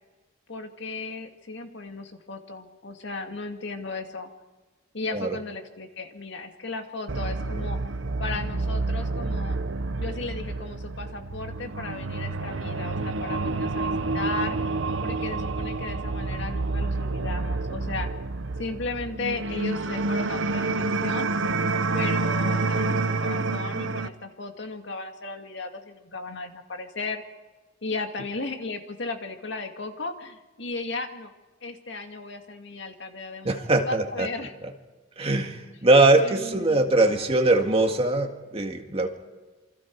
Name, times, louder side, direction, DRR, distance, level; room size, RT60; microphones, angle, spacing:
voice 1, 0.5-4.3 4.9-7.8 8.2-9.6 10.0-14.6 15.0-18.1 18.6-21.3 21.9-27.2 27.8-31.3 31.6-34.5 36.1-37.3, left 3 dB, 65° left, 5 dB, 2.2 m, -35 dB
sound 1, 7.1-24.1, right 3 dB, 80° right, 0.9 m, -28 dB
voice 2, 33.4-34.3 35.2-39.1, right 2 dB, 30° right, 3 dB, 2.0 m, -21 dB
28.0 x 25.5 x 4.7 m, 1.2 s
head